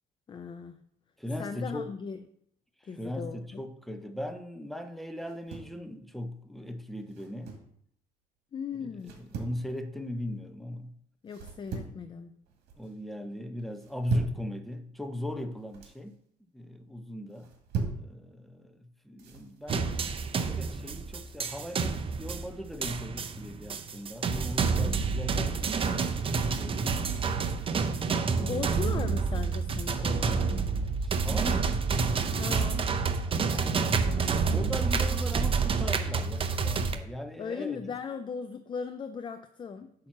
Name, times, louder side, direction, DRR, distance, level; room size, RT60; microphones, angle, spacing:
voice 1, 0.3-0.8 1.4-2.2 2.9-3.6 8.5-9.2 11.2-12.4 28.3-30.5 32.4-32.9 37.4-39.9, left 6 dB, 30° left, 0.4 m, -38 dB
voice 2, 1.2-1.9 2.8-7.5 8.8-10.9 12.8-16.2 16.5-17.5 17.9-18.8 19.0-20.1 20.4-27.5 31.0-32.0 33.4-34.0 34.4-37.8 40.0-40.1, left 1 dB, ahead, 0.7 m, -39 dB
sound 1, 5.2-5.8 7.1-7.7 9.0-9.6 11.3-12.0 12.4-12.9 13.7-14.4 15.5-16.0 17.3-18.1 19.2-19.9, right 4 dB, 80° right, 1.7 m, -37 dB
sound 2, 19.7-37.0, right 5 dB, 35° right, 0.6 m, -28 dB
8.7 x 2.9 x 5.9 m
cardioid pair, 110°, 17 cm